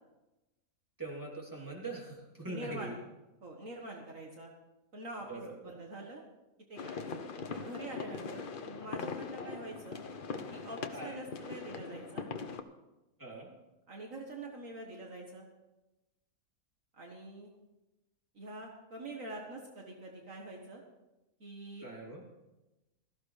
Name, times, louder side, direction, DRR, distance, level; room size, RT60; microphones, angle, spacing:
voice 1, 1.0-2.9 5.3-5.8 9.4-9.6 10.9-11.2 13.2-13.5 21.8-22.2, right 2 dB, 10° right, -3 dB, 3.2 m, -43 dB
voice 2, 2.4-3.0 3.4-4.5 4.9-6.2 6.7-7.1 7.5-10.0 10.5-12.3 13.9-15.5 16.9-17.5 18.4-20.8 21.4-21.9, right 2 dB, 60° right, 0 dB, 1.9 m, -45 dB
sound 1, 6.8-12.6, left 5 dB, 45° left, 0.8 m, -41 dB
17.0 x 14.0 x 3.3 m, 1.0 s
omnidirectional pair, 1.6 m